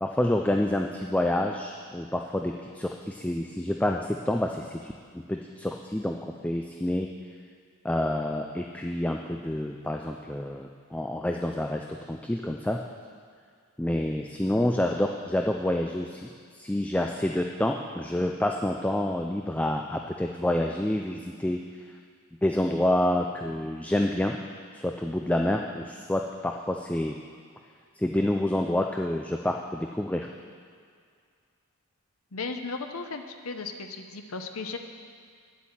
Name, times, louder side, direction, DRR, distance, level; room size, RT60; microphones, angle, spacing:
voice 1, 0.0-4.8 5.1-7.1 7.8-12.8 13.8-21.6 22.4-24.4 24.7-27.2 28.0-30.3, left 1 dB, 5° left, 2 dB, 0.4 m, -28 dB
voice 2, 32.3-34.8, left 4 dB, 70° left, 6 dB, 0.9 m, -36 dB
9.7 x 8.3 x 7.4 m, 2.1 s
head